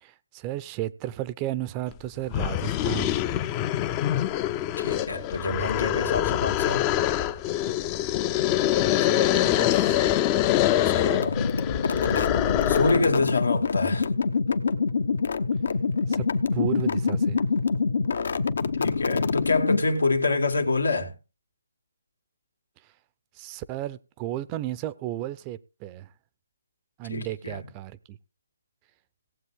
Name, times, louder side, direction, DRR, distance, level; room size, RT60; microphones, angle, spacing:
voice 1, 0.0-3.4 8.9-10.1 16.1-16.3 16.5-17.4 23.4-26.1 27.0-28.2, right 13 dB, 20° right, 0.6 m, -34 dB
sound 1, 1.9-2.0 2.3-13.1, left 12 dB, 20° left, 0.5 m, -25 dB
voice 2, 4.8-6.8 10.8-11.4 12.7-14.1 18.8-21.1 27.1-27.6, left 3 dB, 90° left, 2.4 m, -26 dB
sound 2, 11.1-20.1, left 4 dB, 65° left, 1.0 m, -26 dB
18.0 x 7.6 x 3.6 m
hypercardioid pair, 155°, 0 cm